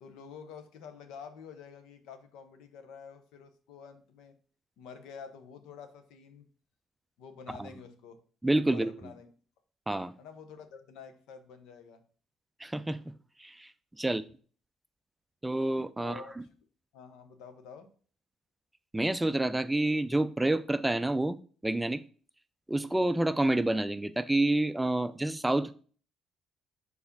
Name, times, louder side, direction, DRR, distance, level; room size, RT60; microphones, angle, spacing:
voice 1, 0.0-4.3 4.8-6.4 7.2-8.2 8.7-9.3 10.2-12.0 14.0-14.3 16.0-16.5 16.9-17.9, left 6 dB, 80° left, 0.9 m, -48 dB
voice 2, 8.4-8.9 9.9-10.1 12.6-13.1 13.4-13.7 14.0-14.2 15.4-16.2 18.9-21.4 21.6-22.0 22.7-25.7, right 1 dB, 10° right, 0.4 m, -28 dB
4.9 x 4.1 x 5.3 m
cardioid pair, 90°, 0 cm